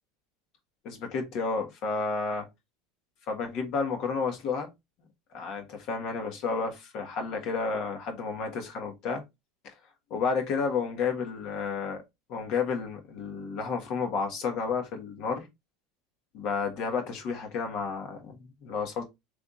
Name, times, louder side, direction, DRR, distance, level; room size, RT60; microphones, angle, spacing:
voice 1, 0.8-2.5 3.3-4.7 5.3-9.2 10.1-12.0 12.3-15.5 16.3-19.0, left 5 dB, 55° left, 1.6 m, -31 dB
3.5 x 3.3 x 4.0 m
supercardioid pair, 115°, 0 cm